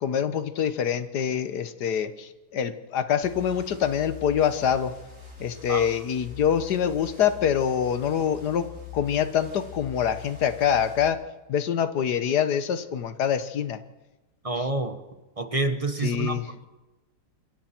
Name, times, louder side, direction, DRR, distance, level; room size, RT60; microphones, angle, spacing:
voice 1, 0.0-4.9 5.4-8.7 8.9-11.2 11.5-13.8 14.6-14.7 16.0-16.5, left 8 dB, 65° left, 11 dB, 1.6 m, -25 dB
sound 1, 3.2-11.1, left 8 dB, 40° right, 6.7 m, -43 dB
voice 2, 14.4-15.0 15.4-16.6, right 2 dB, 20° right, 8 dB, 1.1 m, -28 dB
27.0 x 23.5 x 4.5 m, 1.1 s
omnidirectional pair, 1.9 m